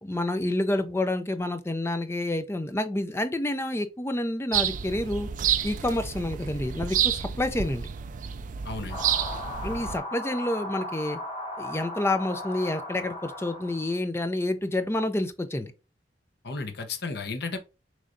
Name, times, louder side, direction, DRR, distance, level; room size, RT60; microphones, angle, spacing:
voice 1, 0.0-5.3 5.6-7.9 9.6-11.2 11.6-15.7, left 1 dB, 15° left, 0.5 m, -28 dB
sound 1, 4.5-10.0, right 9 dB, 45° right, 0.3 m, -29 dB
voice 2, 8.6-9.0 16.4-17.6, left 4 dB, 60° left, 0.8 m, -33 dB
sound 2, 8.9-14.0, left 1 dB, 30° left, 1.1 m, -36 dB
6.3 x 3.2 x 2.6 m
head